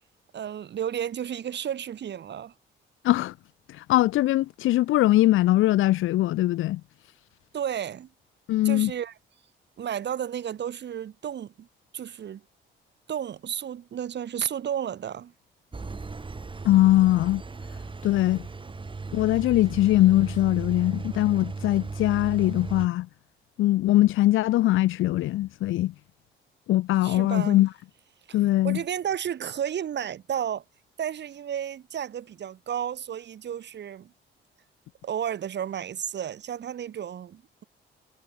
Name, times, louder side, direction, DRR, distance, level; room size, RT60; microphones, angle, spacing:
voice 1, 0.3-2.5 7.5-8.1 8.6-9.1 9.8-11.7 11.9-12.4 13.1-15.3 27.0-27.6 28.3-28.4 28.6-30.6 31.0-34.1 35.0-37.6, right 9 dB, 60° right, 5.2 m, -32 dB
voice 2, 3.0-3.3 3.7-6.8 8.5-8.9 16.6-17.4 18.0-18.5 19.1-23.1 23.6-25.9 26.7-27.7 28.3-28.8, left 15 dB, 90° left, 2.5 m, -21 dB
Engine, 15.7-22.9, right 4 dB, 25° right, 3.2 m, -36 dB
cardioid pair, 90°, 20 cm